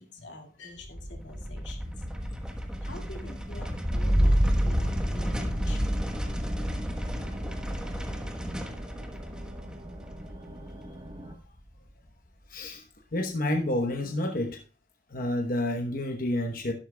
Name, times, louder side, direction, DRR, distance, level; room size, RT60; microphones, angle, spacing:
voice 1, 0.0-1.9 2.8-6.0, left 2 dB, 85° left, 1 dB, 2.2 m, -46 dB
sound 1, 0.8-11.4, equal, 5° right, 1.2 m, -30 dB
sound 2, 4.4-11.3, right 1 dB, 30° right, 1.2 m, -45 dB
voice 2, 12.5-12.8 13.1-14.6 15.1-16.7, left 1 dB, 50° left, 3 dB, 1.0 m, -29 dB
11.5 x 11.5 x 2.3 m, 0.37 s
head